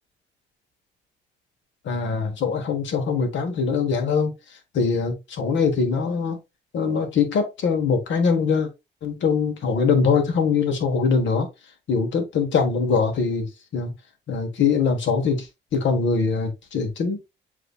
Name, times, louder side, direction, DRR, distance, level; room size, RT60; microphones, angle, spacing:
voice 1, 1.8-4.3 4.7-6.4 6.7-8.7 9.0-11.5 11.9-13.9 14.3-15.5 15.7-17.2, left 5 dB, 70° left, 1.4 m, -22 dB
7.6 x 2.8 x 2.3 m
cardioid pair, 90°, 20 cm